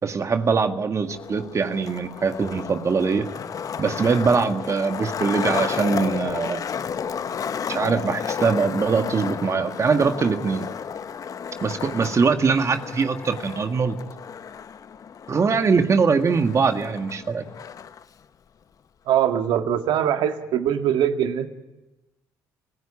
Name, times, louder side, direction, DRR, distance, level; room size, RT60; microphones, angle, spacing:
voice 1, 0.0-3.3 3.8-6.6 7.7-10.7 11.6-14.0 15.3-17.4, right 5 dB, 40° right, 7 dB, 1.8 m, -22 dB
Skateboard, 1.0-18.0, left 7 dB, 45° left, 0.9 m, -32 dB
voice 2, 19.1-21.5, right 10 dB, 75° right, 6 dB, 1.9 m, -22 dB
27.5 x 16.0 x 9.8 m, 1.1 s
supercardioid pair, 65°, 8 cm